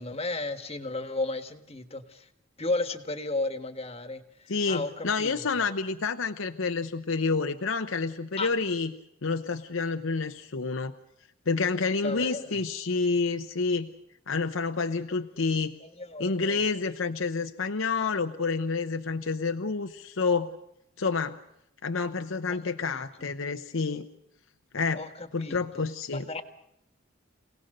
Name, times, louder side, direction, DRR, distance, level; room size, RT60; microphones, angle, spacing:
voice 1, 0.0-2.3 2.6-5.4 8.4-8.5 12.0-12.6 15.5-16.6 22.5-23.3 24.9-25.8 26.1-26.4, left 2 dB, 30° left, 9 dB, 1.5 m, -34 dB
voice 2, 4.5-8.9 9.2-11.0 11.5-13.9 14.3-15.8 16.2-20.5 21.0-21.4 21.8-24.1 24.7-25.0 25.3-26.3, left 4 dB, 70° left, 8 dB, 0.9 m, -29 dB
27.5 x 18.0 x 6.6 m, 0.80 s
head